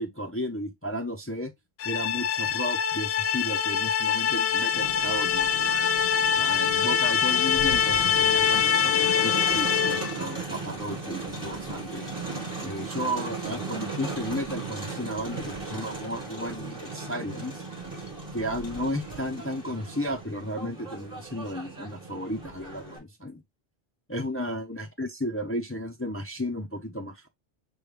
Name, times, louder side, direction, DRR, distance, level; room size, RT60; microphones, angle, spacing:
voice 1, 0.0-1.5 1.8-5.8 6.4-12.1 12.6-17.6 18.3-23.4 24.1-27.3, equal, 15° left, 0.4 m, -34 dB
sound 1, 1.8-10.2, left 8 dB, 65° left, 0.8 m, -24 dB
Crowd, 4.7-23.0, right 3 dB, 15° right, 1.7 m, -37 dB
6.3 x 2.3 x 3.3 m
omnidirectional pair, 1.2 m